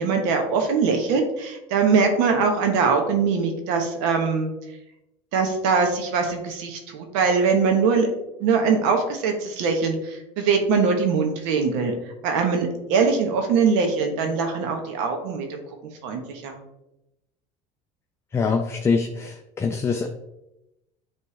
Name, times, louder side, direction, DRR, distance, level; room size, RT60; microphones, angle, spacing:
voice 1, 0.0-4.5 5.3-8.1 8.4-15.6 16.0-16.5, right 5 dB, 90° right, 4 dB, 1.1 m, -22 dB
voice 2, 18.3-20.1, left 5 dB, 20° left, 4 dB, 0.4 m, -24 dB
8.6 x 3.3 x 3.2 m, 0.91 s
cardioid pair, 135°, 15 cm